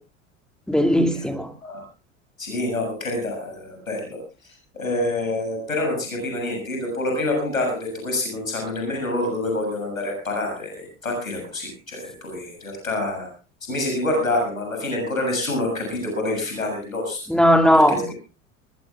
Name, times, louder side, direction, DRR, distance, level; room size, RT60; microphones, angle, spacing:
voice 1, 0.7-1.5 17.3-18.1, equal, ahead, 6 dB, 2.5 m, -17 dB
voice 2, 2.4-4.2 4.7-13.3 13.7-17.2 17.7-18.1, left 2 dB, 90° left, 2 dB, 7.3 m, -27 dB
21.0 x 20.5 x 2.3 m, 0.31 s
figure-of-eight pair, 75°, 40 cm